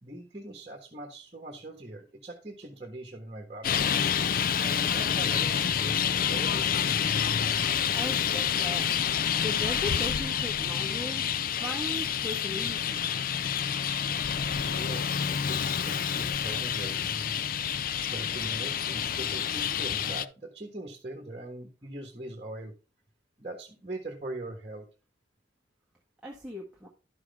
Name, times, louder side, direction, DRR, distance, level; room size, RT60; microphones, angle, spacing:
voice 1, 0.0-3.9 4.6-7.0 14.6-17.5 18.1-22.7 23.4-24.8, right 1 dB, 35° right, 2 dB, 1.4 m, -41 dB
Traffic noise roadway noise, 3.6-20.3, left 8 dB, 50° left, 0.4 m, -28 dB
voice 2, 7.9-8.9 9.4-11.2 11.5-13.0 26.2-26.9, equal, 5° right, -3 dB, 1.4 m, -38 dB
11.5 x 6.2 x 3.5 m, 0.33 s
head